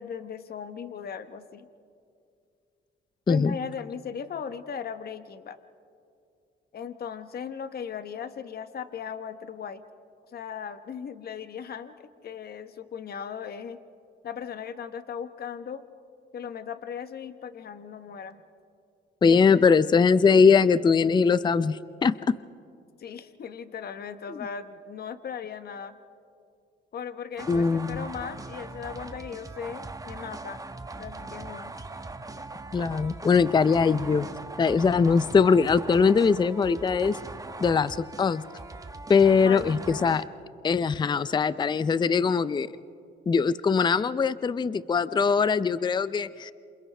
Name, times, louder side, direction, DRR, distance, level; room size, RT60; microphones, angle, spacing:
voice 1, 0.0-1.7 3.3-5.6 6.7-9.8 10.3-13.8 14.2-15.8 16.3-18.4 19.3-19.4 23.0-25.9 26.9-30.6 30.9-31.7 39.4-40.1, left 7 dB, 50° left, 10 dB, 1.0 m, -37 dB
voice 2, 19.2-22.3 24.3-24.4 27.5-28.1 32.7-34.3 34.6-37.2 37.6-38.4 39.1-40.2 40.6-42.7 43.3-46.5, left 5 dB, 20° left, 16 dB, 0.4 m, -21 dB
sound 1, 27.4-40.2, right 3 dB, 15° right, 1.0 m, -40 dB
28.0 x 27.0 x 3.4 m, 2.4 s
cardioid pair, 90°, 20 cm